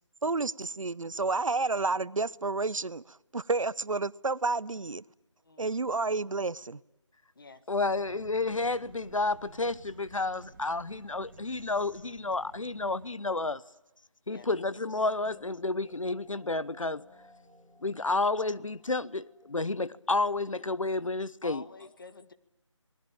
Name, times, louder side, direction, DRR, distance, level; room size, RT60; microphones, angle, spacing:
voice 1, 0.2-5.0 5.6-6.8, right 3 dB, 85° right, 0.8 m, -30 dB
voice 2, 5.4-5.9 7.4-7.7 14.3-14.5 21.4-22.3, left 4 dB, 45° left, 1.7 m, -49 dB
voice 3, 7.7-13.6 14.3-17.0 17.8-21.6, left 3 dB, 90° left, 1.0 m, -30 dB
sound 1, 7.8-13.1, right 3 dB, 40° right, 2.0 m, -53 dB
sound 2, 14.3-19.9, left 1 dB, ahead, 2.1 m, -59 dB
27.5 x 20.0 x 8.9 m
figure-of-eight pair, 165°, 16 cm